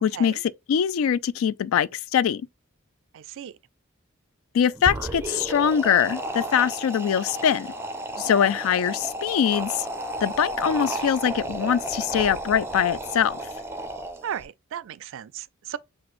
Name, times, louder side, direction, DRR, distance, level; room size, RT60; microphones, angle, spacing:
voice 1, 0.0-0.4 0.7-2.4 4.5-7.7 8.2-9.9 10.2-13.4, left 8 dB, 75° left, 0.3 m, -23 dB
voice 2, 3.1-3.6 8.2-8.4 14.2-15.8, right 9 dB, 65° right, 0.3 m, -36 dB
sound 1, 4.7-14.4, right 1 dB, 10° right, 0.5 m, -33 dB
5.9 x 2.5 x 3.0 m
head